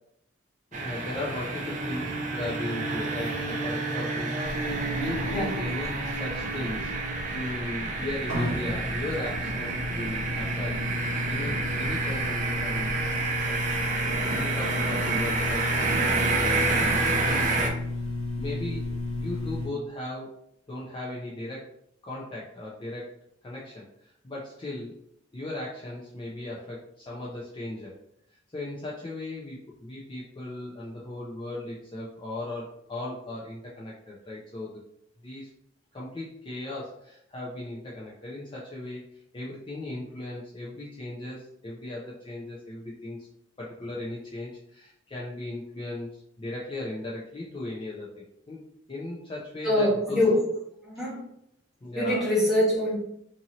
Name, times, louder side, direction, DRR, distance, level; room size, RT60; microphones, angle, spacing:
voice 1, 0.7-10.8 11.3-13.0 13.5-13.7 14.3-17.7 18.4-18.9 19.1-20.4 20.7-21.7 22.0-23.1 23.4-25.0 25.3-27.9 28.5-34.8 35.2-35.5 35.9-39.0 39.3-43.3 43.6-50.2 51.8-52.3, left 2 dB, 25° left, -6 dB, 0.5 m, -37 dB
sound 1, 0.7-17.7, right 3 dB, 40° right, 0.5 m, -29 dB
sound 2, 4.5-19.7, left 2 dB, 80° left, 1.2 m, -33 dB
voice 2, 49.6-50.4 50.8-51.2 51.9-53.0, left 1 dB, ahead, -7 dB, 1.2 m, -24 dB
2.7 x 2.6 x 2.9 m, 0.73 s
head